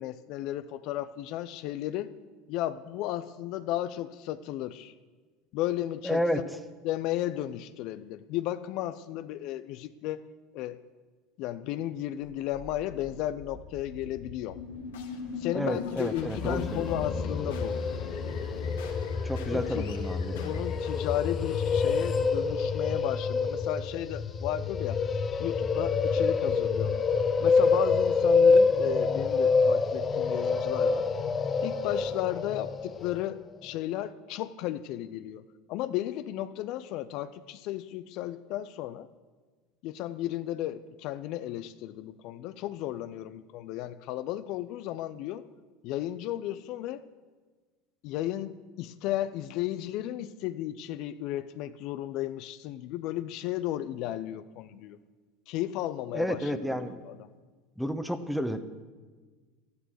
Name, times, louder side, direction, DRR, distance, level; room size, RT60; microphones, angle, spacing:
voice 1, 0.0-2.1 2.5-4.9 5.5-6.2 6.8-10.2 10.5-10.8 11.4-14.6 15.4-17.8 19.5-19.9 20.3-27.0 27.4-31.1 31.6-35.4 35.7-39.1 39.8-45.5 45.8-47.0 48.0-55.0 55.5-56.5 57.0-57.3, left 13 dB, 60° left, 12 dB, 0.6 m, -34 dB
voice 2, 6.0-6.4 15.5-16.8 19.2-20.5 56.1-57.0 57.8-58.6, equal, ahead, 10 dB, 1.2 m, -31 dB
sound 1, 12.5-23.3, left 5 dB, 80° left, 2.1 m, -41 dB
sound 2, 16.2-33.2, left 4 dB, 30° left, 0.9 m, -27 dB
13.5 x 11.5 x 6.5 m, 1.4 s
hypercardioid pair, 85°, 0 cm